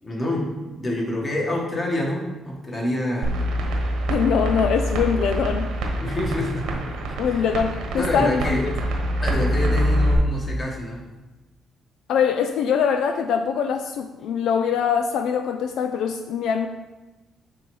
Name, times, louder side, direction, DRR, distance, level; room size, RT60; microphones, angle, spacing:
voice 1, 0.0-3.4 6.0-7.5 8.0-8.7 9.2-11.0, left 1 dB, 30° left, -1 dB, 1.8 m, -27 dB
sound 1, 3.2-10.1, equal, 90° right, 1.3 m, -25 dB
voice 2, 4.1-5.7 7.2-8.7 12.1-16.7, left 7 dB, 80° left, 7 dB, 0.4 m, -23 dB
6.7 x 3.4 x 5.4 m, 1.1 s
cardioid pair, 90°, 0 cm